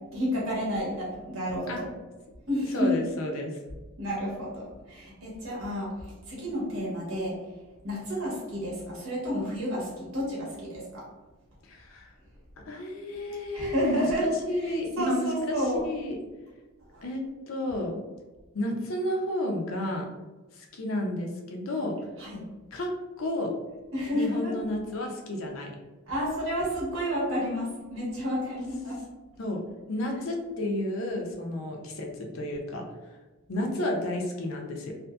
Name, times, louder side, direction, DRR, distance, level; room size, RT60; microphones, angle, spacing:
voice 1, 0.1-1.9 2.5-2.9 4.0-7.4 7.8-11.1 13.5-14.3 14.6-15.8 16.9-17.0 22.2-22.4 23.9-24.5 26.1-29.0, equal, 75° right, -5 dB, 1.0 m, -31 dB
voice 2, 2.7-3.6 11.6-12.1 12.6-16.2 17.0-18.0 18.5-20.1 20.5-21.9 22.7-22.9 23.2-23.5 24.1-25.7 29.4-29.6 29.9-32.8 33.5-34.9, left 1 dB, 75° left, 1 dB, 0.5 m, -31 dB
2.6 x 2.5 x 2.3 m, 1.2 s
head